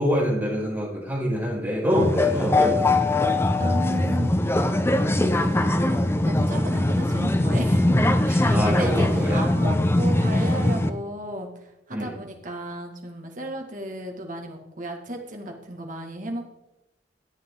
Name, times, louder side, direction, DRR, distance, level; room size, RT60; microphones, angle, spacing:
voice 1, 0.0-3.2 8.5-9.6 11.9-12.2, equal, 10° right, -6 dB, 4.8 m, -26 dB
sound 1, 1.9-10.9, left 1 dB, 15° left, 0.6 m, -21 dB
voice 2, 3.6-16.6, right 1 dB, 45° right, 2 dB, 1.9 m, -35 dB
13.5 x 8.9 x 3.8 m, 0.93 s
head